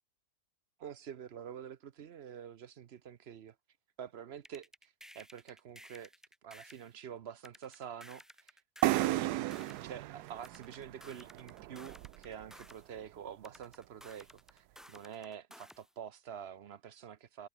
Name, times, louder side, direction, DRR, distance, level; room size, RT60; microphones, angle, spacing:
voice 1, 0.8-3.6 4.0-6.1 6.4-9.3 9.8-17.5, right 8 dB, 55° right, 0.8 m, -47 dB
sound 1, 4.4-6.9 7.4-9.9 10.4-12.9 13.4-15.9, equal, ahead, 1.6 m, -55 dB
sound 2, 8.8-12.5, right 16 dB, 85° right, 1.1 m, -34 dB
omnidirectional pair, 1.7 m